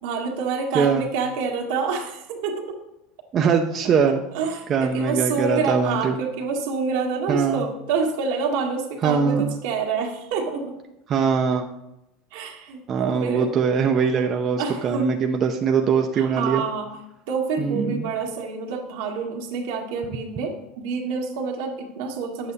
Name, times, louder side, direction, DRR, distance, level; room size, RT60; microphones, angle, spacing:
voice 1, 0.0-2.7 3.8-10.8 12.3-13.5 14.6-15.2 16.1-17.0 17.3-22.5, right 5 dB, 75° right, 1 dB, 1.8 m, -27 dB
voice 2, 3.3-4.2 4.7-6.2 7.3-7.6 9.0-9.6 11.1-11.6 12.9-16.6 17.6-18.0, right 6 dB, 35° right, 3 dB, 0.6 m, -22 dB
9.3 x 7.7 x 4.1 m, 0.89 s
supercardioid pair, 130°, 0 cm